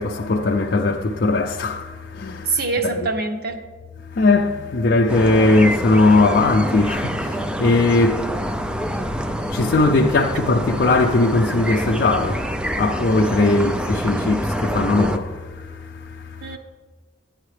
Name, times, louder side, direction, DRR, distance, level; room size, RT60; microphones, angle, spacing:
voice 1, 0.0-2.6 4.1-16.6, left 2 dB, 55° left, 0.4 m, -19 dB
voice 2, 2.5-3.6 16.4-16.6, right 3 dB, 55° right, 0.9 m, -24 dB
sound 1, 5.1-15.2, equal, 5° right, 0.3 m, -26 dB
11.0 x 8.9 x 3.3 m
head